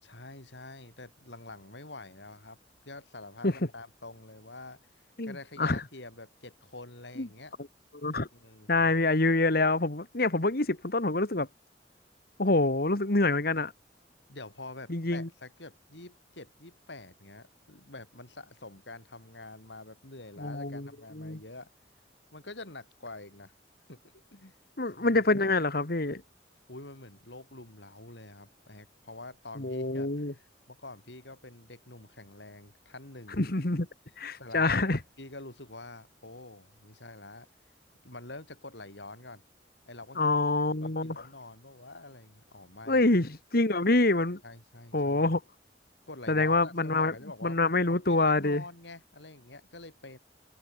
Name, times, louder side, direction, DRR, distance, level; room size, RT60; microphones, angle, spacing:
voice 1, 0.0-2.6 2.8-4.8 5.2-7.5 8.3-8.9 14.3-21.7 22.3-23.5 23.9-24.6 25.0-25.2 26.7-33.4 34.4-37.5 38.0-39.4 39.9-40.4 40.8-43.1 44.4-45.3 46.1-47.6 47.9-50.2, left 2 dB, 85° left, 5.8 m, -47 dB
voice 2, 5.2-5.8 7.2-7.3 7.9-8.3 8.7-11.5 12.4-13.7 14.9-15.3 20.4-20.9 21.1-21.4 24.8-26.2 29.6-30.3 33.4-33.9 34.2-35.0 40.2-41.2 42.9-44.4 44.9-45.4 46.3-47.1 47.4-48.6, left 2 dB, 55° left, 1.9 m, -26 dB
head